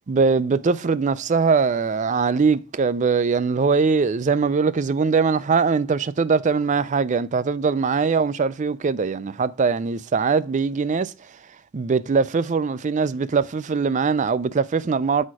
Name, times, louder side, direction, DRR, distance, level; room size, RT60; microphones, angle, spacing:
voice 1, 0.1-11.4 11.7-15.2, right 5 dB, 35° right, 0.4 m, -21 dB
7.4 x 4.3 x 4.7 m
head